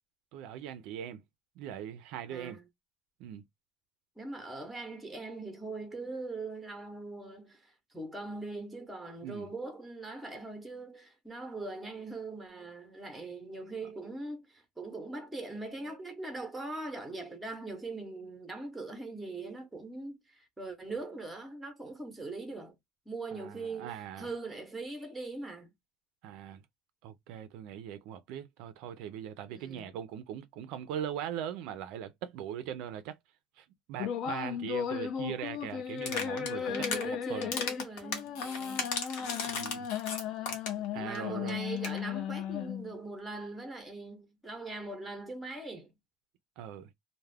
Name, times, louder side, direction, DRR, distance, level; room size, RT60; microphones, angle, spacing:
voice 1, 0.3-1.2 1.6-2.6 3.2-3.4 9.2-9.5 23.3-24.3 26.2-26.6 27.0-33.2 33.6-36.7 36.9-37.5 39.5-39.9 40.5-40.6 40.9-41.6 46.6-46.9, right 9 dB, 60° right, 0.4 m, -40 dB
voice 2, 2.3-2.7 4.2-22.8 23.1-25.7 29.5-29.9 36.5-39.5 40.0-40.1 41.0-45.9, right 3 dB, 5° right, 0.7 m, -41 dB
sound 1, 34.0-43.0, left 8 dB, 45° left, 0.4 m, -36 dB
sound 2, 36.0-37.0 37.4-40.9 41.1-41.2 41.5-41.6 41.8-42.0, left 5 dB, 75° left, 0.9 m, -36 dB
2.3 x 2.1 x 3.2 m
cardioid pair, 170°, 0 cm